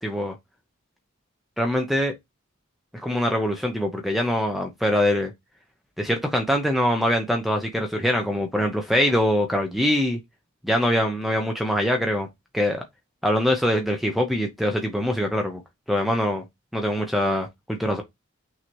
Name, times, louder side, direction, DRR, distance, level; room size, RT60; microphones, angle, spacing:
voice 1, 0.0-0.4 1.6-2.1 3.0-5.3 6.0-10.2 10.6-12.3 12.5-12.8 13.2-15.6 15.9-16.4 16.7-18.0, equal, ahead, 0.6 m, -23 dB
6.1 x 2.8 x 3.0 m
head